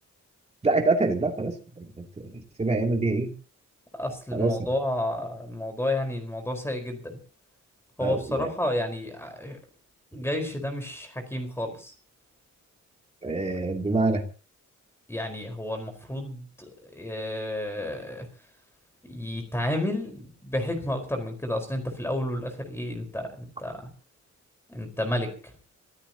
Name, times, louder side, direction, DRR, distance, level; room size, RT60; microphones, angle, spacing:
voice 1, 0.6-2.3 2.6-3.3 4.3-4.5 8.0-8.5 13.2-14.2, right 3 dB, 20° right, 1 dB, 3.0 m, -26 dB
voice 2, 3.9-7.2 8.0-9.6 10.1-11.9 15.1-18.3 19.1-23.8 24.7-25.5, left 1 dB, 10° left, 4 dB, 4.7 m, -31 dB
26.5 x 15.5 x 3.0 m, 0.38 s
wide cardioid pair, 155°, 30 cm